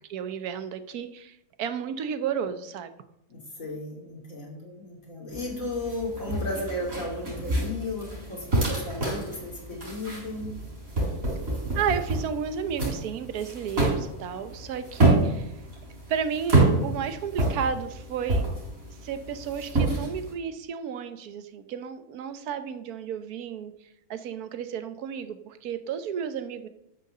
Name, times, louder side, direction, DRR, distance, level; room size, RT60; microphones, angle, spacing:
voice 1, 0.1-2.9 11.7-15.5 16.1-18.5 19.0-23.7 24.1-26.7, right 7 dB, 75° right, 10 dB, 1.4 m, -32 dB
voice 2, 3.3-10.5, left 1 dB, 60° left, -2 dB, 3.4 m, -34 dB
sound 1, 5.3-20.3, right 2 dB, 60° right, 4.8 m, -28 dB
12.5 x 6.5 x 6.6 m, 0.85 s
omnidirectional pair, 1.6 m